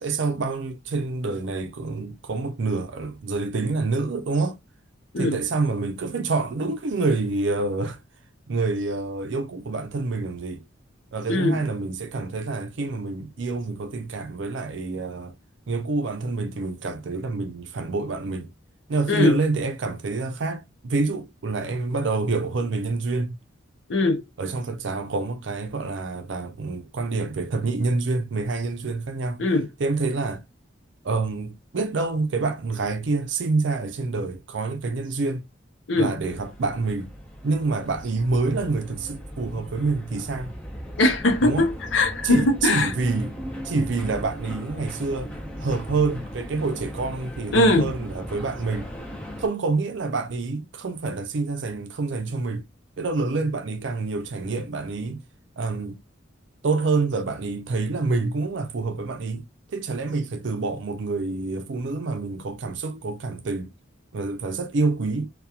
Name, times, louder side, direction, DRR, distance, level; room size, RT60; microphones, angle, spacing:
voice 1, 0.0-4.6 5.2-8.0 8.5-10.6 11.1-15.4 15.7-18.5 18.9-23.4 24.4-29.5 29.8-30.4 31.0-35.5 35.9-37.1 37.4-40.6 41.4-41.7 42.2-43.3 43.6-45.3 45.6-48.9 49.4-52.6 53.0-55.2 55.6-56.0 56.6-59.5 59.7-63.7 64.1-65.3, right 3 dB, 65° right, 0.5 m, -27 dB
voice 2, 11.3-11.6 19.1-19.4 23.9-24.2 29.4-29.7 35.9-36.1 41.0-42.9 47.5-47.9, left 2 dB, 70° left, 0.6 m, -21 dB
sound 1, 36.2-49.5, equal, 5° left, 0.6 m, -38 dB
2.8 x 2.3 x 2.3 m
head